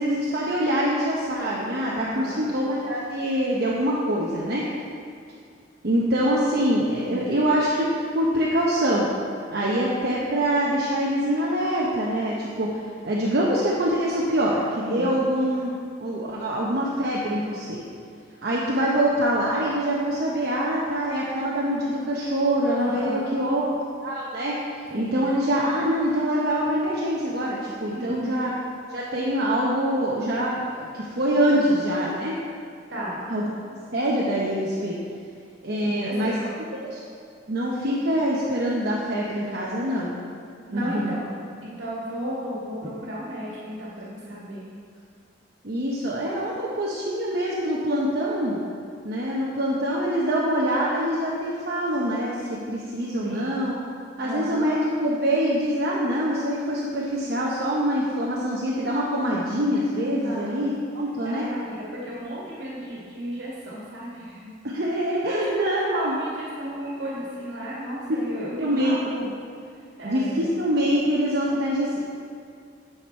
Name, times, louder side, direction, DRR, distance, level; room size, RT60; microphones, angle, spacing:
voice 1, 0.0-4.7 5.8-9.0 9.5-12.8 13.0-15.7 16.0-17.8 18.4-23.7 24.0-28.5 28.9-32.4 33.3-33.5 33.9-35.0 35.6-36.4 36.8-37.0 37.5-40.1 40.7-41.2 45.6-48.6 49.0-52.4 52.7-53.7 54.2-61.5 64.7-66.1 68.1-68.2 68.6-69.0 70.0-72.1, equal, 60° right, -5 dB, 0.9 m, -24 dB
voice 2, 1.8-2.5 6.9-7.3 14.8-15.2 22.7-23.4 24.9-25.2 27.9-28.5 31.4-31.8 32.9-33.3 35.8-36.8 40.7-41.2 41.6-44.7 53.2-53.6 54.2-54.7 60.2-60.8 61.2-64.5 65.3-69.3 70.0-70.5, equal, 75° right, -6 dB, 1.8 m, -33 dB
9.7 x 5.9 x 4.5 m, 2.3 s
head